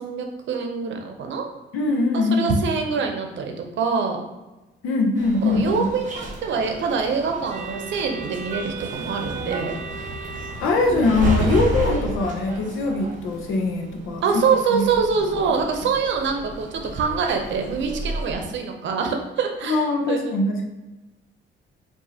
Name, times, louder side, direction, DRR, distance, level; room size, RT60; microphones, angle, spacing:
voice 1, 0.0-1.5 2.1-4.2 5.4-9.8 14.2-20.3, right 5 dB, 70° right, 4 dB, 0.7 m, -25 dB
voice 2, 1.7-2.6 4.8-5.9 10.6-14.4 14.7-14.9 19.6-20.7, left 3 dB, 90° left, 2 dB, 0.7 m, -22 dB
sound 1, 5.2-18.3, right 2 dB, 40° right, 0.9 m, -31 dB
4.7 x 2.7 x 2.8 m, 1.1 s
cardioid pair, 90°, 20 cm